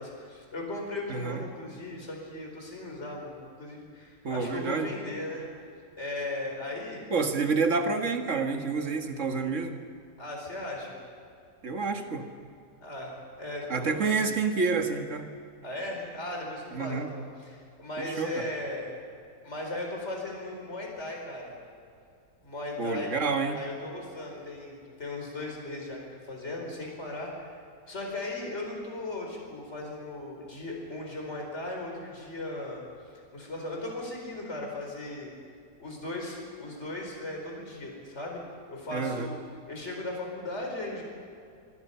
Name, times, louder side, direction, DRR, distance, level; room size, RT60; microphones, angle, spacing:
voice 1, 0.0-5.4 6.0-7.0 10.2-11.0 12.8-14.2 15.6-18.9 19.4-21.6 22.4-26.0 26.3-27.5 27.9-32.8 33.3-35.3 35.8-38.4 38.7-39.4 39.7-41.0, left 2 dB, 40° left, 0 dB, 4.8 m, -37 dB
voice 2, 1.1-1.4 4.2-4.9 7.1-9.7 11.6-12.2 13.7-15.3 16.7-17.1 18.0-18.5 22.8-23.6 38.9-39.3, right 4 dB, 45° right, 5 dB, 1.9 m, -28 dB
25.5 x 24.5 x 5.7 m, 2.4 s
omnidirectional pair, 1.8 m